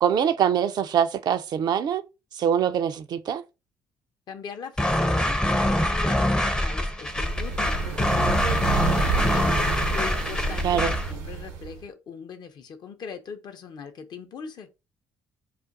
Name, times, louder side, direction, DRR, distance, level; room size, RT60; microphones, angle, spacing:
voice 1, 0.0-2.0 2.3-3.4 10.6-10.9, right 8 dB, 50° right, 0.4 m, -23 dB
voice 2, 4.3-14.7, left 6 dB, 55° left, 0.6 m, -40 dB
sound 1, 4.8-11.1, left 1 dB, 10° left, 0.5 m, -24 dB
sound 2, 7.1-11.8, right 5 dB, 80° right, 0.8 m, -30 dB
2.4 x 2.2 x 3.8 m
hypercardioid pair, 55°, 9 cm